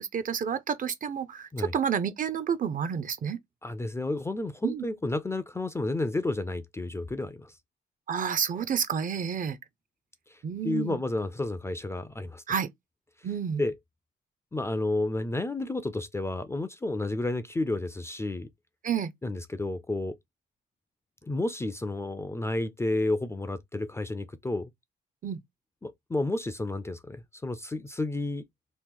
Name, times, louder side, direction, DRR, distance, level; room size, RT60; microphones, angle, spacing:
voice 1, 0.0-3.4 4.6-4.8 8.1-9.6 10.4-11.0 12.5-12.7 13.2-13.6 18.8-19.1 25.2-25.4, right 7 dB, 45° right, 0.5 m, -30 dB
voice 2, 3.6-7.5 10.3-12.4 13.6-13.7 14.5-18.5 19.2-20.2 21.2-24.7 25.8-28.4, left 2 dB, 15° left, 0.4 m, -31 dB
3.0 x 2.0 x 3.5 m
cardioid pair, 90°, 20 cm